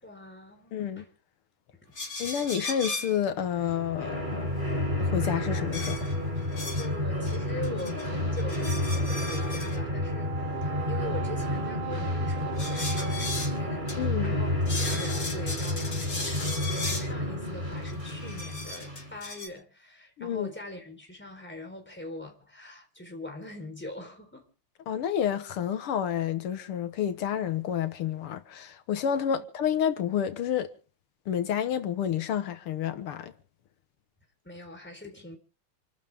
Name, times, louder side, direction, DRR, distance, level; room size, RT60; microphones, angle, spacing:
voice 1, 0.0-1.1 1.8-1.9 6.8-10.3 10.6-14.5 14.8-24.5 29.3-29.4 34.4-35.4, left 1 dB, 5° left, 3.9 m, -42 dB
voice 2, 0.7-1.1 2.2-4.4 5.0-6.0 14.0-14.4 20.2-20.5 24.9-30.7 31.3-33.3, left 9 dB, 85° left, 2.1 m, -29 dB
sound 1, 1.9-3.2 5.7-6.9 7.3-8.0 8.3-9.8 12.5-13.6 13.9-14.0 14.2-14.3 14.7-17.1 17.9-19.5, left 2 dB, 40° left, 4.2 m, -37 dB
sound 2, 3.4-19.2, left 1 dB, 20° right, 5.6 m, -30 dB
Brass instrument, 9.8-14.2, right 14 dB, 90° right, 2.0 m, -40 dB
27.5 x 13.0 x 3.6 m
omnidirectional pair, 2.4 m